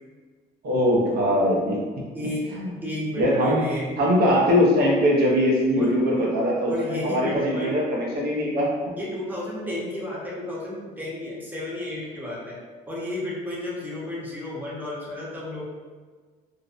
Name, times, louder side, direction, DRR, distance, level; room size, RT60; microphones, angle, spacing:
voice 1, 0.6-1.8 2.5-2.7 3.2-3.6 4.0-9.0, equal, 70° right, -3 dB, 0.6 m, -21 dB
voice 2, 2.1-3.9 5.8-6.3 6.7-7.7 9.0-12.6 12.8-15.6, left 1 dB, 10° right, -6 dB, 0.7 m, -32 dB
2.5 x 2.0 x 2.4 m, 1.5 s
cardioid pair, 110°, 17 cm